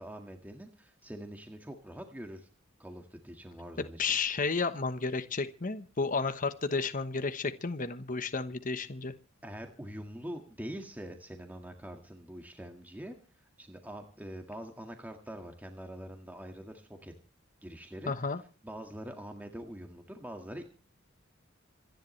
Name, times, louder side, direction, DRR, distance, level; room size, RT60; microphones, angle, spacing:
voice 1, 0.0-2.5 2.8-4.2 9.4-17.1 17.6-18.3 18.6-20.6, equal, 10° right, 4 dB, 1.8 m, -44 dB
voice 2, 4.0-9.1 18.1-18.4, left 4 dB, 40° left, 10 dB, 1.1 m, -32 dB
27.0 x 10.5 x 3.3 m, 0.36 s
head